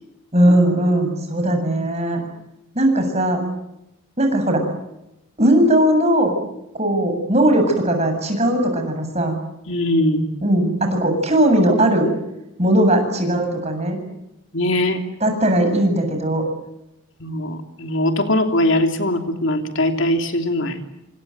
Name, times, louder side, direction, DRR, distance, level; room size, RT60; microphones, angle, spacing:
voice 1, 0.3-2.2 2.7-3.4 4.2-4.6 5.4-6.3 6.8-9.4 10.4-12.1 12.6-14.0 15.2-16.4, right 1 dB, 30° right, 5 dB, 7.7 m, -18 dB
voice 2, 9.7-10.3 14.5-15.0 17.2-20.8, left 1 dB, 65° left, 6 dB, 3.1 m, -21 dB
28.0 x 26.0 x 8.0 m, 0.88 s
head